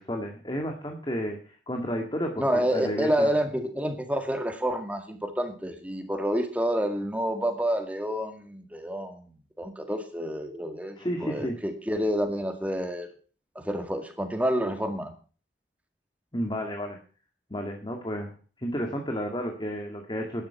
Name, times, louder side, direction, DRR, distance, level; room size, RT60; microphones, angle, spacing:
voice 1, 0.1-1.4 1.7-3.3 11.0-11.6 16.3-17.0 17.5-18.3 18.6-20.5, equal, 25° left, 3 dB, 1.9 m, -31 dB
voice 2, 2.4-13.1 13.6-15.1, equal, 10° right, 6 dB, 2.1 m, -29 dB
12.0 x 10.5 x 5.7 m, 0.39 s
head